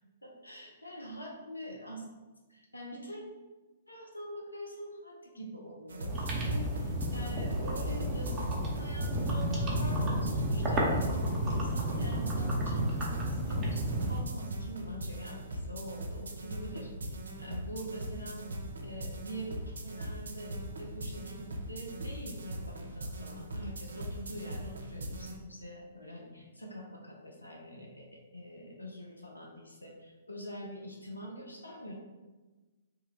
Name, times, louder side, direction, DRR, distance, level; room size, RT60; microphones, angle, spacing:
voice 1, 0.2-2.0 2.5-3.2 3.9-18.4 18.8-31.9, equal, 90° left, -1 dB, 0.6 m, -45 dB
sound 1, 5.9-25.4, right 1 dB, 70° right, 0.4 m, -40 dB
sound 2, 6.1-14.2, right 1 dB, 15° right, 0.7 m, -31 dB
3.0 x 2.3 x 3.5 m, 1.2 s
figure-of-eight pair, 120°, 0 cm